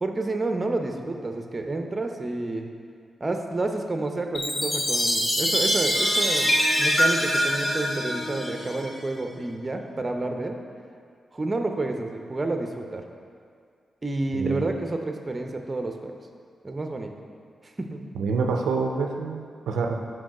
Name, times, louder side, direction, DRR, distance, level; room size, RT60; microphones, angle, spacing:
voice 1, 0.0-2.7 3.2-10.6 11.3-13.0 14.0-16.2 16.6-17.1 17.6-18.1, right 2 dB, 30° right, 4 dB, 0.7 m, -29 dB
Chime, 4.3-8.9, equal, 30° left, 1.2 m, -24 dB
sound 1, 5.9-9.5, left 2 dB, 85° left, 1.3 m, -39 dB
voice 2, 18.2-19.9, right 4 dB, 90° right, 3 dB, 0.4 m, -27 dB
6.1 x 4.7 x 4.9 m, 2.2 s
cardioid pair, 60°, 0 cm